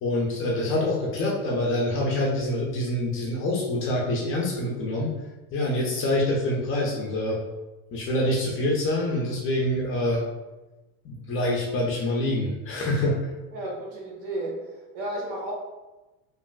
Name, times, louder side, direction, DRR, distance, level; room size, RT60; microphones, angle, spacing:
voice 1, 0.0-5.1 5.5-7.4 7.9-10.2 11.0-13.2, left 1 dB, 30° left, -2 dB, 0.4 m, -26 dB
voice 2, 13.5-14.6 14.9-15.5, right 1 dB, 60° right, -2 dB, 1.1 m, -32 dB
3.0 x 2.5 x 2.3 m, 1.1 s
supercardioid pair, 140°, 43 cm